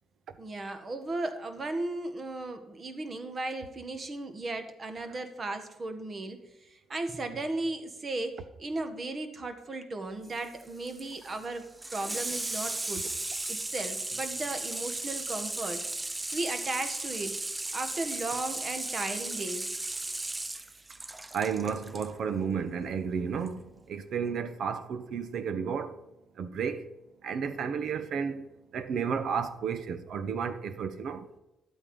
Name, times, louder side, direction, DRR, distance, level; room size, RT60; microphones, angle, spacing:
voice 1, 0.4-13.1 13.5-15.8 16.3-17.4 17.7-19.7 21.7-21.8, right 2 dB, 35° right, 1.6 m, -36 dB
Water tap faucet / Sink (filling or washing), 10.2-22.1 23.4-23.5, right 2 dB, 15° right, 0.5 m, -36 dB
voice 2, 21.3-26.0 26.4-26.9 27.2-28.5 28.7-31.3, right 6 dB, 65° right, 1.0 m, -32 dB
11.5 x 8.3 x 5.4 m
cardioid pair, 90°, 0 cm